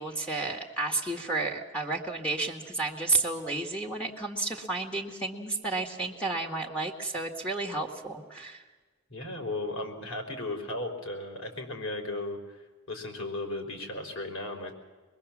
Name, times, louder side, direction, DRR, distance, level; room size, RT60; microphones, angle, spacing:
voice 1, 0.0-8.6, right 3 dB, 5° left, 0 dB, 1.8 m, -31 dB
voice 2, 9.1-12.6 12.9-14.7, left 2 dB, 85° left, 3 dB, 4.3 m, -35 dB
24.5 x 21.5 x 7.3 m, 1.3 s
head